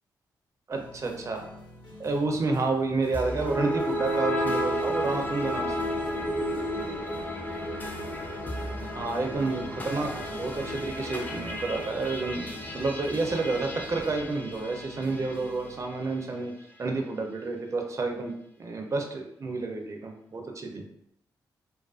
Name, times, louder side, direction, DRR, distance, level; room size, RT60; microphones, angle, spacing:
sound 1, 0.7-15.8, equal, 75° left, 0.6 m, -48 dB
voice 1, 0.7-1.4 2.0-5.9 8.9-12.4 12.7-16.5 16.8-18.3 18.6-20.8, right 3 dB, 40° right, 3 dB, 0.4 m, -30 dB
sound 2, 3.1-15.5, equal, 20° left, 0.4 m, -32 dB
2.3 x 2.2 x 2.3 m, 0.75 s
cardioid pair, 55°, 8 cm